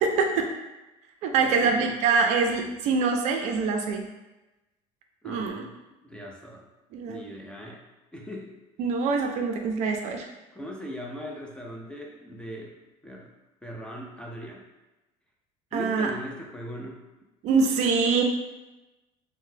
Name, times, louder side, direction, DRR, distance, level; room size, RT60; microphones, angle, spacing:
voice 1, 0.0-0.5 1.2-4.0 5.2-5.6 6.9-7.2 8.8-10.3 15.7-16.1 17.4-18.2, right 4 dB, 55° right, 3 dB, 0.4 m, -24 dB
voice 2, 1.4-2.0 5.2-5.7 6.0-6.7 7.1-7.8 8.1-8.5 10.5-13.3 13.6-14.7 15.7-17.1, equal, 5° left, -1 dB, 0.4 m, -39 dB
3.7 x 2.1 x 2.6 m, 1.1 s
cardioid pair, 130°, 14 cm